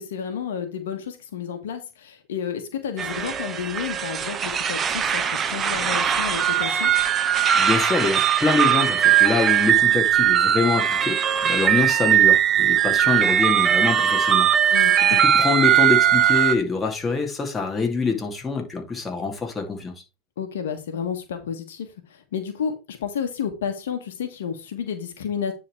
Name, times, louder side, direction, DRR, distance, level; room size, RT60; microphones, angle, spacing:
voice 1, 0.0-6.9 14.7-15.2 20.4-25.5, left 7 dB, 75° left, 1.4 m, -31 dB
sound 1, 3.0-16.5, right 10 dB, 25° right, 0.8 m, -20 dB
voice 2, 7.5-14.8 15.2-19.9, left 4 dB, 15° left, 2.5 m, -25 dB
9.7 x 3.8 x 4.6 m
hypercardioid pair, 105°, 0 cm